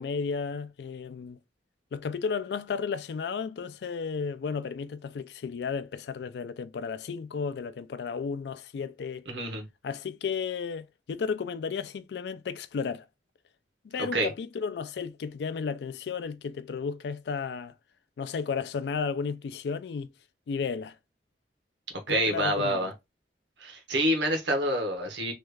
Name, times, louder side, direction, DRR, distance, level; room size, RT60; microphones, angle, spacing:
voice 1, 0.0-1.4 1.9-9.3 9.8-13.0 13.8-17.7 18.2-20.1 20.5-21.0 22.1-22.9, left 5 dB, 70° left, 0.3 m, -33 dB
voice 2, 9.3-9.6 14.0-14.3 22.1-22.9 23.6-25.3, right 1 dB, 90° right, 1.0 m, -27 dB
3.2 x 2.4 x 3.2 m
head